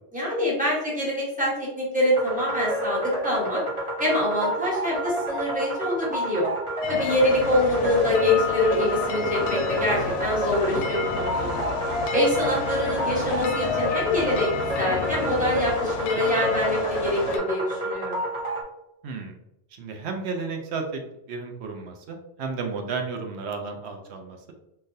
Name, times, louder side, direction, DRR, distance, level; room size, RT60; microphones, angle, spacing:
voice 1, 0.1-3.6 4.0-6.5 6.9-11.6 12.1-14.5 14.8-18.2, left 1 dB, 5° right, -7 dB, 1.2 m, -25 dB
sound 1, 2.1-18.6, equal, 30° right, 0.7 m, -30 dB
sound 2, 6.8-17.4, left 5 dB, 85° left, 0.9 m, -31 dB
voice 2, 19.0-19.3 19.8-21.0 21.3-24.5, right 4 dB, 70° right, 3 dB, 0.8 m, -33 dB
3.8 x 2.6 x 2.6 m, 0.86 s
omnidirectional pair, 1.2 m